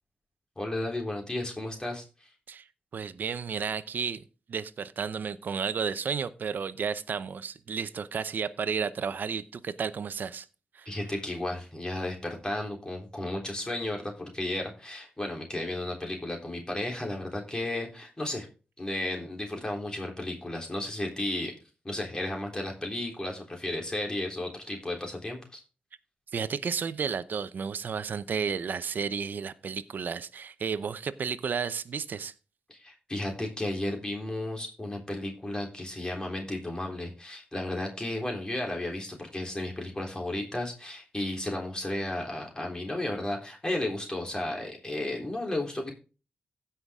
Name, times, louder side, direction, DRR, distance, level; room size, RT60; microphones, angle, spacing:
voice 1, 0.6-2.3 10.9-18.5 18.8-21.5 21.8-25.6 32.7-45.9, left 1 dB, 25° left, 1 dB, 3.5 m, -33 dB
voice 2, 2.9-10.5 10.7-10.9 26.3-32.3, right 6 dB, 70° right, 15 dB, 0.7 m, -32 dB
16.0 x 5.8 x 3.7 m, 0.34 s
cardioid pair, 60°, 3 cm